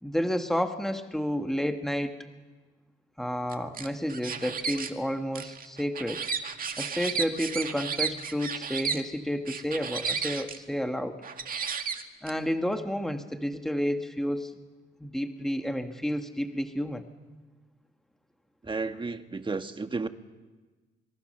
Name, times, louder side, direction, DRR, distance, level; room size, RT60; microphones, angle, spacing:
voice 1, 0.0-2.2 3.2-6.3 6.8-11.2 12.2-14.5 15.0-17.0, equal, ahead, 1.8 m, -30 dB
sound 1, 3.5-4.9 5.3-9.0 9.5-10.6 11.2-12.3, right 6 dB, 45° right, 2.1 m, -33 dB
voice 2, 18.6-20.1, right 4 dB, 25° right, 1.5 m, -32 dB
26.0 x 22.0 x 6.9 m
cardioid pair, 90°, 20 cm